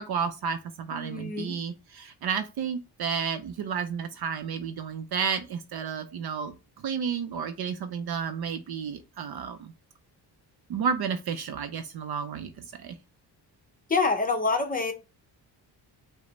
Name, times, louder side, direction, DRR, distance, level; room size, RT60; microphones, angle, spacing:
voice 1, 0.0-6.5 6.8-9.7 10.7-12.9, right 6 dB, 60° right, 0.6 m, -32 dB
voice 2, 0.9-1.5 13.9-14.9, left 3 dB, 20° left, 0.7 m, -26 dB
4.9 x 2.1 x 4.0 m
cardioid pair, 130°, 43 cm